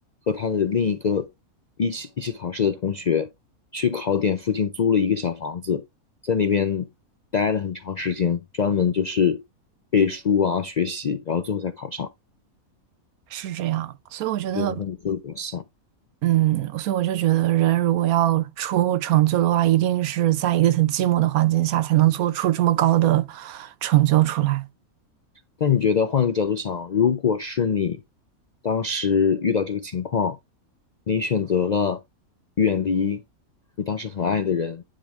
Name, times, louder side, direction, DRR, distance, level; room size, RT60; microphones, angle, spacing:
voice 1, 0.3-1.3 1.8-3.3 3.7-5.8 6.2-6.9 7.3-9.4 9.9-12.1 14.5-15.6 25.6-28.0 28.6-30.4 31.1-32.0 32.6-33.2 33.8-34.8, left 6 dB, 75° left, 0.4 m, -23 dB
voice 2, 13.3-14.8 16.2-24.7, right 14 dB, 85° right, 1.2 m, -21 dB
10.0 x 3.4 x 3.6 m
omnidirectional pair, 1.5 m